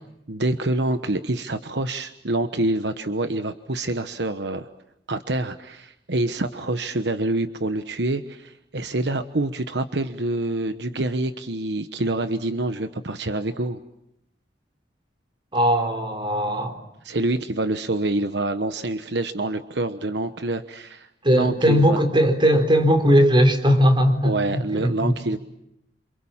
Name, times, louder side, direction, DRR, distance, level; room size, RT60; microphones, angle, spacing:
voice 1, 0.3-4.7 5.1-13.8 17.0-21.1 21.3-22.0 24.2-25.4, right 2 dB, 70° right, 9 dB, 1.2 m, -26 dB
voice 2, 15.5-16.8 21.2-25.1, equal, 30° right, 6 dB, 4.0 m, -19 dB
28.5 x 27.5 x 7.4 m, 0.80 s
head